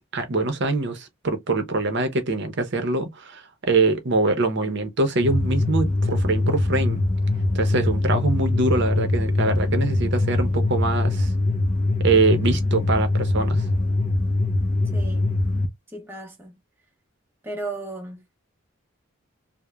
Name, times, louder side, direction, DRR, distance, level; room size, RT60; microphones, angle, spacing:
voice 1, 0.1-7.0 7.5-11.3 12.0-13.6, right 3 dB, 55° right, 0.6 m, -23 dB
sound 1, 5.2-15.7, left 2 dB, 35° left, 0.4 m, -23 dB
voice 2, 14.9-15.3 15.9-16.5 17.4-18.2, right 2 dB, 10° right, 0.6 m, -34 dB
3.0 x 2.0 x 2.3 m
head